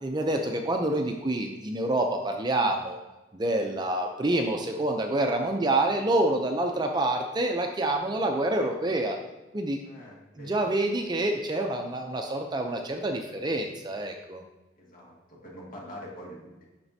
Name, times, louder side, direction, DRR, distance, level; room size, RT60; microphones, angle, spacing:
voice 1, 0.0-3.0 3.3-9.2 9.5-9.8 10.4-14.4, right 1 dB, 25° right, 3 dB, 0.5 m, -27 dB
voice 2, 9.8-10.6 14.8-16.6, equal, 45° left, -3 dB, 2.0 m, -45 dB
9.1 x 5.9 x 2.7 m, 1.1 s
head